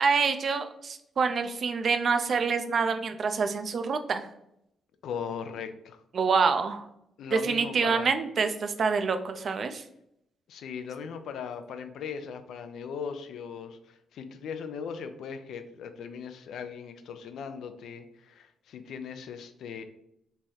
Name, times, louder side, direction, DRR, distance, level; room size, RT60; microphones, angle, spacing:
voice 1, 0.0-4.3 6.1-6.9 7.3-9.8, right 5 dB, 55° right, 8 dB, 0.4 m, -26 dB
voice 2, 5.0-6.0 7.2-8.1 10.5-19.8, left 6 dB, 75° left, 8 dB, 0.4 m, -38 dB
3.1 x 2.3 x 4.1 m, 0.78 s
supercardioid pair, 50°, 0 cm